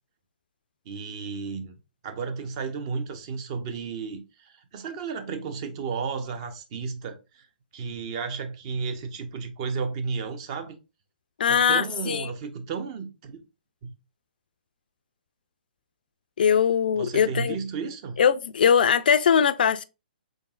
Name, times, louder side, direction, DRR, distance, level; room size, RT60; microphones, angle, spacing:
voice 1, 0.9-1.8 2.0-7.5 7.7-10.8 11.5-13.4 13.8-13.9 16.9-18.2, right 5 dB, 40° right, 0.8 m, -33 dB
voice 2, 11.4-12.3 16.4-17.6 18.2-19.8, left 7 dB, 65° left, 0.4 m, -21 dB
3.8 x 3.7 x 2.4 m
hypercardioid pair, 145°, 5 cm